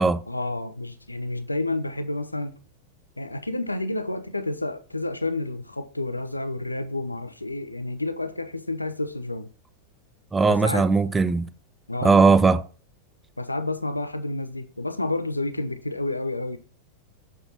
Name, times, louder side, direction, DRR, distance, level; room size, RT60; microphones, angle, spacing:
voice 1, 0.3-2.6 3.2-9.5 10.5-10.9 11.9-12.2 13.4-16.6, left 2 dB, 85° left, 0.6 m, -30 dB
voice 2, 10.3-11.5 12.0-12.6, right 4 dB, 15° right, 0.4 m, -18 dB
6.9 x 4.3 x 3.9 m
figure-of-eight pair, 90°, 0 cm